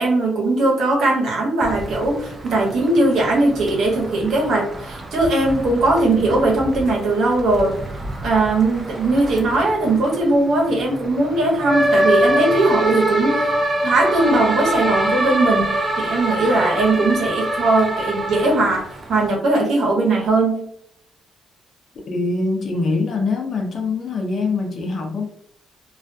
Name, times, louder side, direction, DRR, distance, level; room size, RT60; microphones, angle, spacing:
voice 1, 0.0-7.8 8.2-13.5 13.8-20.6, right 2 dB, 70° right, -2 dB, 0.9 m, -19 dB
sound 1, 1.6-19.3, right 1 dB, 30° right, 0.5 m, -25 dB
voice 2, 22.1-25.2, left 3 dB, 50° left, 3 dB, 0.7 m, -23 dB
2.4 x 2.2 x 2.6 m, 0.69 s
cardioid pair, 90°, 0 cm